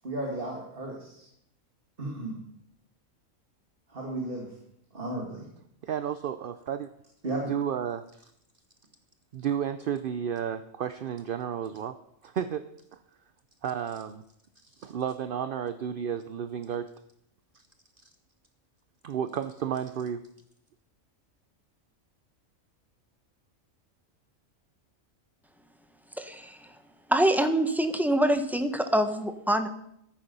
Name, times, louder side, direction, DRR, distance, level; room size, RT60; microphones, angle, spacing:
voice 1, 0.0-1.2 2.0-2.4 3.9-4.5 4.9-5.5 7.2-7.5, right 2 dB, 40° right, -1 dB, 2.3 m, -34 dB
voice 2, 5.8-6.9 7.5-8.3 9.3-13.0 13.6-14.2 14.7-16.9 17.5-17.6 19.0-20.3, right 8 dB, 60° right, 11 dB, 0.6 m, -32 dB
voice 3, 26.2-26.7 27.1-29.7, right 1 dB, ahead, 7 dB, 0.7 m, -25 dB
14.5 x 8.8 x 5.4 m, 0.74 s
omnidirectional pair, 1.4 m